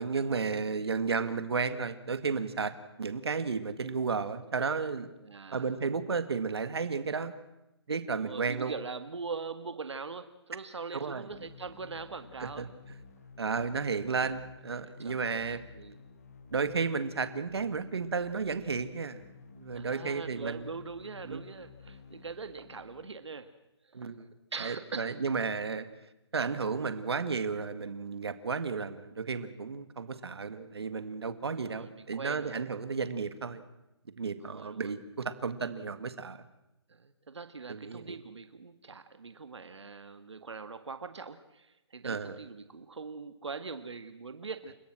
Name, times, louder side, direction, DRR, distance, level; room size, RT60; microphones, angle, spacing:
voice 1, 0.0-5.1 5.5-7.4 7.9-8.7 11.0-11.3 12.4-12.7 13.4-15.6 16.5-19.2 19.6-20.6 21.2-21.4 23.9-24.3 24.6-25.9 26.3-33.6 34.2-36.4 37.7-38.2 42.0-42.4, right 5 dB, 65° right, 11 dB, 2.1 m, -33 dB
voice 2, 5.2-5.7 8.2-12.7 14.8-16.0 19.7-23.5 23.8-24.0 24.5-25.1 31.6-32.6 34.4-34.9 36.9-44.7, right 4 dB, 80° right, 9 dB, 1.9 m, -42 dB
sound 1, 11.3-23.3, left 5 dB, 35° left, 1.7 m, -53 dB
30.0 x 16.0 x 7.6 m, 0.93 s
hypercardioid pair, 175°, 15 cm